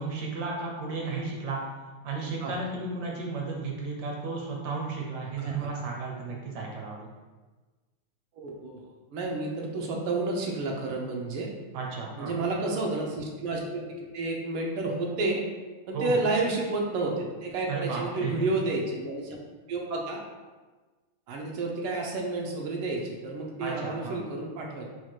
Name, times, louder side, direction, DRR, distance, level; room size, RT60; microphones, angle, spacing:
voice 1, 0.0-1.6 2.0-7.1 11.7-12.4 15.9-16.1 17.7-18.5 23.6-24.2, right 4 dB, 65° right, -1 dB, 1.1 m, -34 dB
voice 2, 5.4-5.7 8.3-8.8 9.1-11.5 12.2-15.4 15.9-19.4 19.7-20.2 21.3-24.9, right 2 dB, 85° right, 0 dB, 1.6 m, -30 dB
4.5 x 2.4 x 4.4 m, 1.3 s
omnidirectional pair, 2.3 m